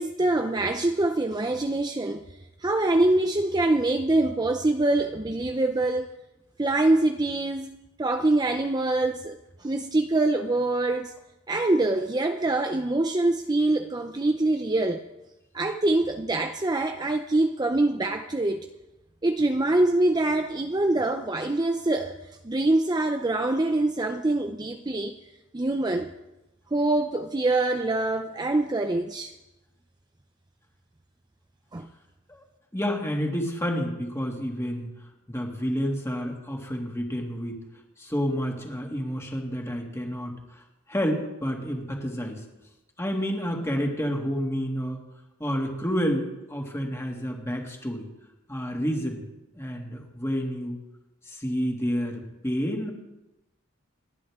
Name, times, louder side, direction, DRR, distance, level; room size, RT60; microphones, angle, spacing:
voice 1, 0.0-2.2 2.6-6.1 6.6-11.1 11.5-15.0 15.5-18.7 19.2-22.1 22.4-25.2 25.5-26.1 26.7-29.3 31.7-31.9, right 2 dB, 20° right, 5 dB, 0.6 m, -24 dB
voice 2, 32.7-34.9 35.3-37.6 38.0-40.6 40.9-42.4 43.0-45.0 45.4-48.1 48.5-49.3 49.6-50.8 51.3-52.9, equal, 15° left, 0 dB, 2.3 m, -29 dB
29.5 x 10.5 x 3.7 m, 0.98 s
head